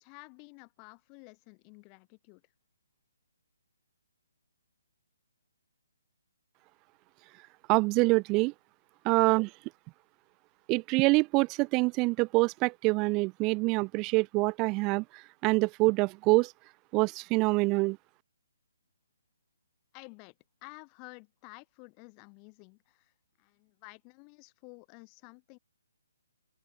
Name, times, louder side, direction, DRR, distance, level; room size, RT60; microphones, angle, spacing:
voice 1, 0.0-2.4 19.9-20.3 20.6-23.1 23.4-25.6, left 40 dB or more, 20° left, 3.0 m, -52 dB
voice 2, 7.7-8.5 9.0-9.5 10.7-16.5 16.9-18.0, right 26 dB, 20° right, 0.3 m, -26 dB
open air
hypercardioid pair, 160°, 0 cm